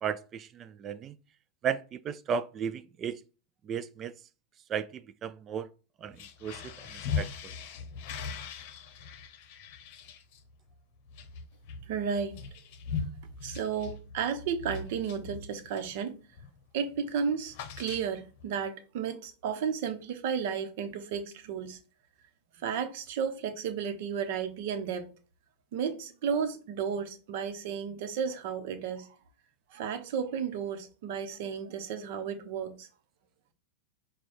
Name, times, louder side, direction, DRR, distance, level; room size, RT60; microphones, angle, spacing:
voice 1, 0.0-1.2 1.6-3.2 3.6-4.1 4.7-5.7 6.0-7.5, right 7 dB, 35° right, 0.3 m, -35 dB
sound 1, 6.0-16.0 16.3-16.6 16.9-18.5, left 6 dB, 60° left, 0.7 m, -40 dB
voice 2, 11.9-12.4 13.4-16.2 16.7-21.8 22.6-25.1 25.7-29.1 29.7-32.9, right 7 dB, 60° right, 0.8 m, -33 dB
4.7 x 2.2 x 4.3 m
hypercardioid pair, 105°, 0 cm